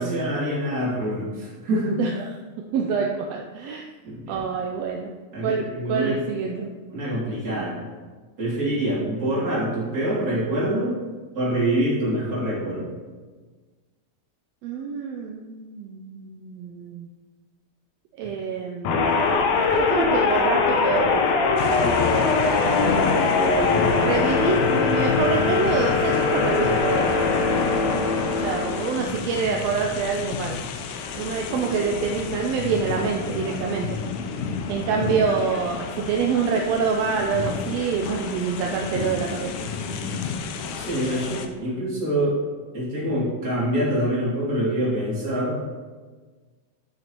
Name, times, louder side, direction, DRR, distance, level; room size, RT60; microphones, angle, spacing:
voice 1, 0.0-2.0 4.0-4.4 5.3-6.2 6.9-7.8 8.4-10.9 11.3-12.8 22.7-23.1 26.1-26.8 35.0-35.1 40.7-42.4 42.7-45.6, right 1 dB, 30° right, -8 dB, 3.0 m, -26 dB
voice 2, 2.0-2.3 2.7-3.8 4.3-5.1 5.4-6.7 7.5-7.7 14.6-17.1 18.2-19.2 19.7-21.6 23.1-27.5 28.4-30.6 31.1-33.9 34.7-39.5, right 5 dB, 75° right, 1 dB, 1.6 m, -26 dB
sound 1, 18.8-29.2, left 4 dB, 70° left, 1.9 m, -21 dB
sound 2, 21.6-41.5, left 5 dB, 90° left, 2.1 m, -32 dB
11.0 x 6.3 x 3.0 m, 1.4 s
omnidirectional pair, 3.4 m